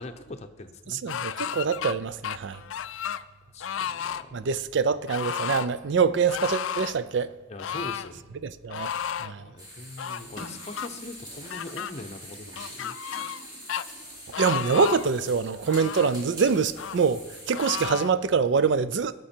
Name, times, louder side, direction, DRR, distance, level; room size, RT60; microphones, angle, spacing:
voice 1, 0.0-1.0 3.5-4.5 7.5-8.3 9.3-13.0, left 2 dB, 35° left, 0.7 m, -42 dB
voice 2, 0.9-2.6 4.3-7.3 8.4-8.9 9.2-9.5 14.4-19.1, right 5 dB, 65° right, 0.4 m, -25 dB
sound 1, 1.1-1.9 2.2-3.2 3.6-4.2 5.1-5.7 6.3-7.0 7.6-8.1 8.7-9.3 10.0-10.9 11.5-11.9 12.6-13.4 13.7-13.8 14.3-15.1 15.7-16.2 16.8-17.0 17.5-18.1, left 8 dB, 80° left, 0.4 m, -33 dB
sound 2, 9.6-17.8, equal, 20° right, 3.0 m, -44 dB
17.0 x 6.1 x 4.4 m
head